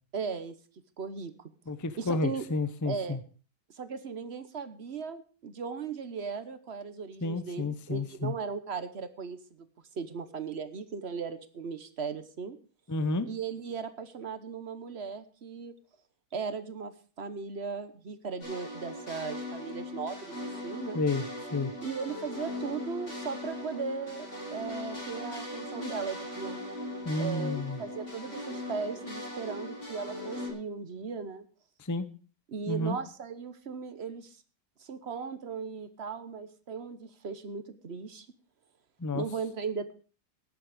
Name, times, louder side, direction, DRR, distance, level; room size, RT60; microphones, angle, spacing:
voice 1, 0.1-0.6 1.0-1.3 2.0-2.4 2.8-3.2 3.7-9.7 9.9-12.6 13.3-15.7 16.3-20.4 20.6-21.0 21.8-26.6 27.2-31.4 32.5-34.4 34.8-38.3 39.1-39.9, right 5 dB, 45° right, 12 dB, 1.1 m, -37 dB
voice 2, 1.7-3.2 7.2-8.3 12.9-13.3 20.9-21.2 21.5-21.7 27.0-27.8 31.8-32.1 32.7-33.0 39.0-39.2, left 2 dB, 20° left, 12 dB, 0.4 m, -30 dB
sound 1, 18.4-30.5, left 1 dB, 40° left, 5.8 m, -39 dB
18.5 x 8.0 x 5.0 m, 0.38 s
omnidirectional pair, 1.9 m